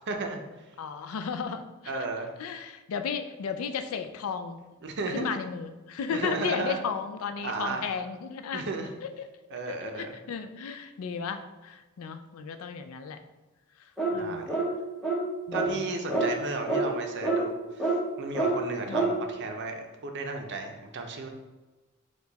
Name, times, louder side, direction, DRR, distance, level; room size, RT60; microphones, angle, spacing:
voice 1, 0.1-0.4 1.9-2.3 4.8-5.3 6.1-6.8 7.4-7.9 8.5-8.9 9.5-10.2 14.1-14.5 15.5-17.5 18.2-21.3, right 3 dB, 55° right, 4 dB, 0.6 m, -34 dB
voice 2, 0.8-1.9 2.4-4.6 5.1-8.7 9.2-13.2 14.1-14.5 15.5-15.8 18.9-19.2, left 6 dB, 70° left, 9 dB, 0.4 m, -34 dB
sound 1, 14.0-14.2 14.5-14.7 15.0-15.2 15.5-15.7 16.1-16.3 16.7-16.8 17.2-17.4 17.8-18.0 18.4-18.5 18.9-19.1, right 3 dB, 5° left, 0.8 m, -26 dB
4.6 x 2.3 x 3.9 m, 1.1 s
head